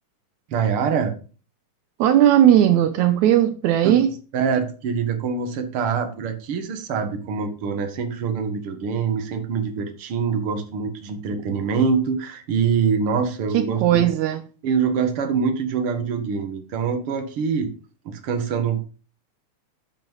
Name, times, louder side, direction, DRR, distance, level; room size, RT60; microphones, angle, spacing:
voice 1, 0.5-1.1 3.8-4.1 4.3-14.1 14.6-17.7 18.1-18.8, right 6 dB, 50° right, 2.2 m, -24 dB
voice 2, 2.0-4.1 13.5-14.4, right 11 dB, 80° right, 2.1 m, -17 dB
8.6 x 8.5 x 5.4 m
omnidirectional pair, 3.4 m